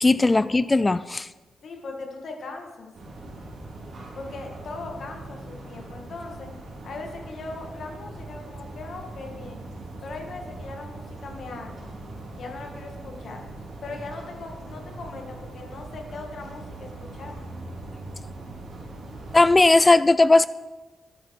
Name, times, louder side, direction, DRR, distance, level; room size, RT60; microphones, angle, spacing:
voice 1, 0.0-1.3 19.3-20.5, left 2 dB, 25° left, 16 dB, 0.3 m, -17 dB
voice 2, 1.6-2.9 4.2-6.5 6.8-9.6 10.0-11.9 12.4-13.4 13.8-17.4, left 3 dB, 65° left, 2 dB, 2.2 m, -39 dB
sound 1, 2.9-19.5, right 2 dB, 60° right, 3.6 m, -40 dB
12.0 x 9.0 x 4.9 m, 1.2 s
cardioid pair, 65°, 0 cm